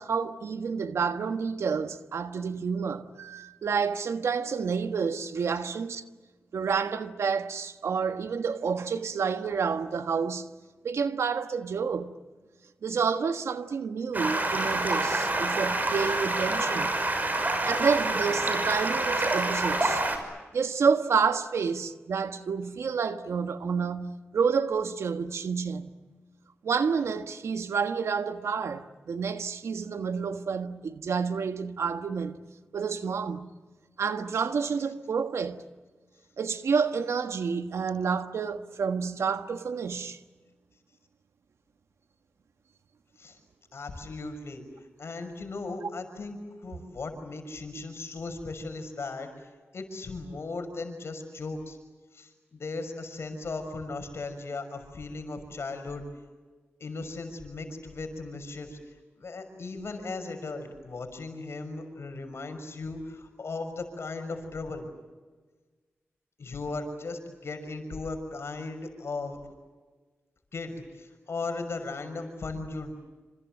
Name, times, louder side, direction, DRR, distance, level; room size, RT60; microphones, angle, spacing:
voice 1, 0.0-6.0 6.5-10.5 10.8-12.1 12.8-17.0 17.6-20.1 20.5-25.9 26.6-32.4 32.7-33.5 34.0-35.6 36.4-40.2 47.7-47.8, right 5 dB, 85° right, 1.4 m, -29 dB
Stream, 14.1-20.2, right 2 dB, 40° right, 6.1 m, -27 dB
voice 2, 43.7-44.6 45.0-49.5 49.7-51.8 52.1-56.0 56.8-58.8 59.1-64.8 66.4-69.4 70.5-73.0, left 3 dB, 70° left, 6.2 m, -37 dB
28.0 x 27.0 x 7.7 m
cardioid pair, 60°, 5 cm